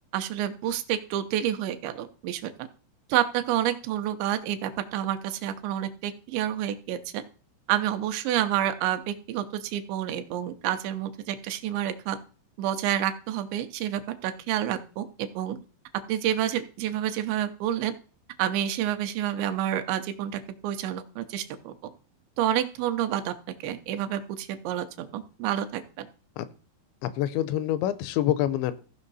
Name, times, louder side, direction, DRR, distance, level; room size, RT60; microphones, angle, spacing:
voice 1, 0.1-2.7 3.1-7.2 7.7-12.2 12.6-15.6 16.1-17.9 18.4-21.7 22.4-23.3 23.6-26.1, right 11 dB, 85° right, 8 dB, 3.1 m, -29 dB
voice 2, 27.0-28.7, left 12 dB, 85° left, 14 dB, 2.9 m, -26 dB
15.0 x 5.5 x 4.1 m, 0.38 s
omnidirectional pair, 5.1 m